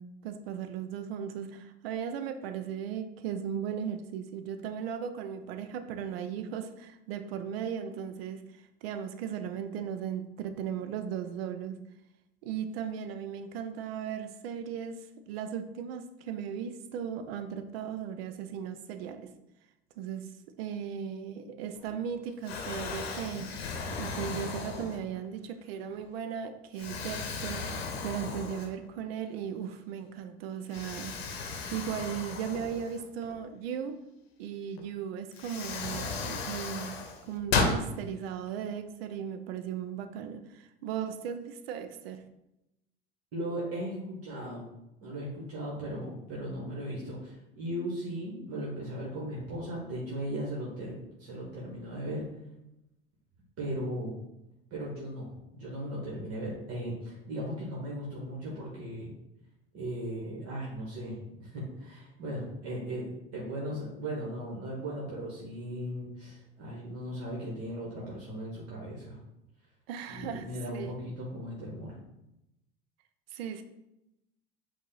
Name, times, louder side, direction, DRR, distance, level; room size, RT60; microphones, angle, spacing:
voice 1, 0.0-11.8 12.4-19.3 20.0-20.3 20.6-23.6 23.9-27.7 28.0-34.0 34.4-36.9 37.2-42.2 69.9-70.5 70.7-70.9 73.3-73.6, right 8 dB, 75° right, 9 dB, 0.6 m, -37 dB
Explosion, 21.8-22.1 22.5-25.3 25.9-26.1 26.8-29.0 29.4-29.5 30.7-33.4 34.8-34.9 35.3-37.8, left 4 dB, 85° left, 0.8 m, -35 dB
voice 2, 43.3-44.7 45.0-52.2 53.6-54.1 54.7-59.1 59.7-69.2 70.1-72.0, right 1 dB, 50° right, -4 dB, 1.6 m, -37 dB
5.2 x 2.6 x 3.9 m, 0.87 s
hypercardioid pair, 80°, 30 cm